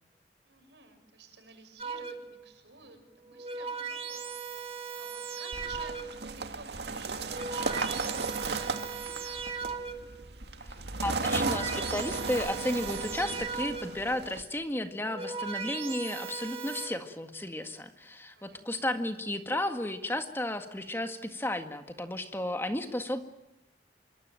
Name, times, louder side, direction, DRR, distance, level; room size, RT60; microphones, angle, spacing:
voice 1, 0.4-3.0 3.3-4.2 5.0-9.4 18.3-18.9, right 4 dB, 90° right, 6 dB, 6.8 m, -52 dB
sound 1, 1.8-2.4 3.1-6.3 7.1-10.2 11.0-14.1 14.9-16.9, right 5 dB, 35° right, 2.7 m, -38 dB
sound 2, 5.5-14.4, right 3 dB, 75° right, 2.1 m, -35 dB
voice 2, 11.0-23.2, left 1 dB, 15° left, 7 dB, 1.8 m, -33 dB
25.5 x 23.5 x 9.1 m, 0.87 s
head